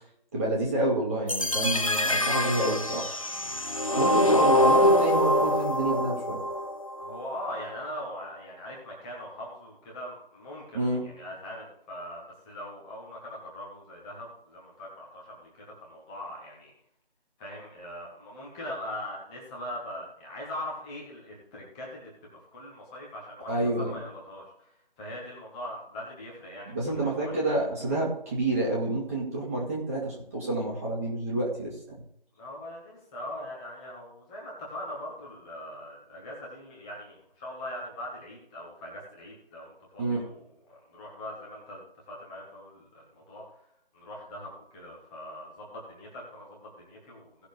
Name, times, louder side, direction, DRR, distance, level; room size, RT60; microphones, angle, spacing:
voice 1, 0.3-3.1 4.0-6.4 10.7-11.1 23.5-24.0 26.7-31.7 40.0-40.2, right 1 dB, 15° right, -4 dB, 1.8 m, -28 dB
sound 1, 1.3-7.3, equal, 35° left, 0.5 m, -24 dB
voice 2, 3.8-4.1 7.0-16.7 17.4-24.7 25.0-27.6 32.3-43.6 43.9-47.5, left 1 dB, 5° left, -4 dB, 1.3 m, -41 dB
17.5 x 6.3 x 3.3 m, 0.73 s
figure-of-eight pair, 165°, 31 cm